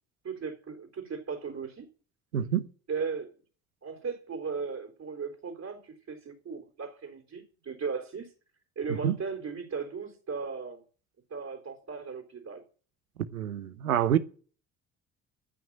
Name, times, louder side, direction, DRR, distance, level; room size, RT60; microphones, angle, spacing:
voice 1, 0.2-1.9 2.9-3.3 3.8-8.3 8.8-10.8 11.3-12.6, right 5 dB, 40° right, 3.9 m, -37 dB
voice 2, 2.3-2.7 8.9-9.2 13.3-14.2, right 9 dB, 85° right, 0.8 m, -27 dB
14.5 x 6.1 x 8.7 m
figure-of-eight pair, 50°, 41 cm